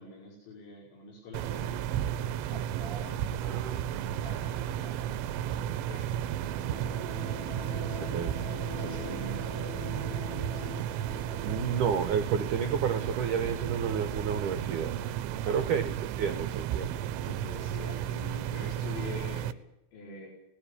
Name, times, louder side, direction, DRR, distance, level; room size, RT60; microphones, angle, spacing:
voice 1, 0.0-2.0 2.5-6.5 7.5-10.8 15.4-15.8 17.2-19.6 19.9-20.3, left 1 dB, 75° left, -5 dB, 7.9 m, -45 dB
sound 1, 1.3-19.5, right 11 dB, 90° right, 3.4 m, -33 dB
voice 2, 3.4-3.8 7.7-7.8 8.1-8.3 11.4-15.0 15.5-17.0, right 7 dB, 70° right, 9 dB, 2.0 m, -30 dB
sound 2, 6.1-14.7, left 9 dB, 55° left, 6.1 m, -46 dB
19.0 x 15.0 x 9.9 m, 0.86 s
omnidirectional pair, 5.3 m